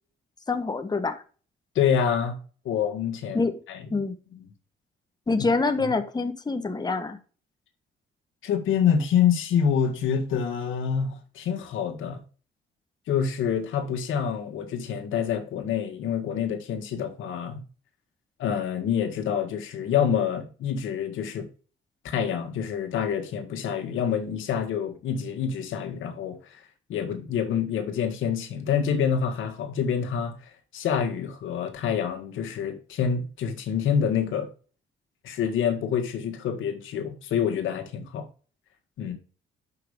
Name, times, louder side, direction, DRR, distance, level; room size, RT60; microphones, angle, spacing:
voice 1, 0.5-1.2 3.3-3.5 3.9-4.2 5.3-7.2, left 3 dB, 20° left, 1.2 m, -26 dB
voice 2, 1.8-2.4 2.7-3.4 3.7-3.8 4.3-4.5 8.4-12.2 13.1-17.6 18.4-21.4 22.0-26.6 26.9-34.5 35.2-38.3 39.0-39.1, left 7 dB, 80° left, 1.7 m, -27 dB
5.8 x 5.5 x 4.9 m
cardioid pair, 90°, 20 cm